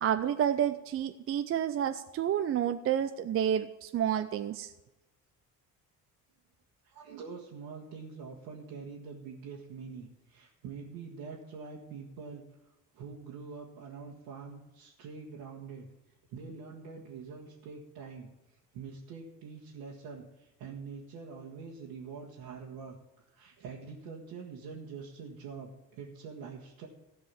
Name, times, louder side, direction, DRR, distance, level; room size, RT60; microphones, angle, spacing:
voice 1, 0.0-4.7, right 9 dB, 30° right, 9 dB, 0.5 m, -30 dB
voice 2, 6.8-12.4 12.9-15.9 16.3-18.3 18.7-23.0 23.3-26.9, right 5 dB, 65° right, -4 dB, 1.7 m, -45 dB
15.5 x 5.4 x 7.2 m, 1.0 s
figure-of-eight pair, 50°, 47 cm